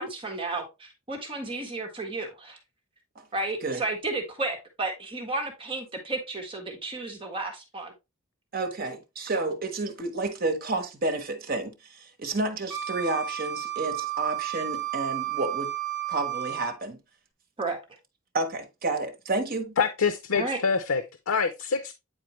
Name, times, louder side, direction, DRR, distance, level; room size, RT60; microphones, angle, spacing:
voice 1, 0.0-2.6 3.3-7.9 17.6-17.8 20.3-20.6, right 2 dB, 25° right, 1.4 m, -32 dB
voice 2, 8.5-15.7 16.1-17.0 18.3-19.8, right 2 dB, 45° right, 1.2 m, -30 dB
Wind instrument woodwind instrument, 12.7-16.8, right 13 dB, 5° right, 3.2 m, -32 dB
voice 3, 19.8-21.9, left 5 dB, 90° left, 0.6 m, -26 dB
8.9 x 4.3 x 3.1 m
head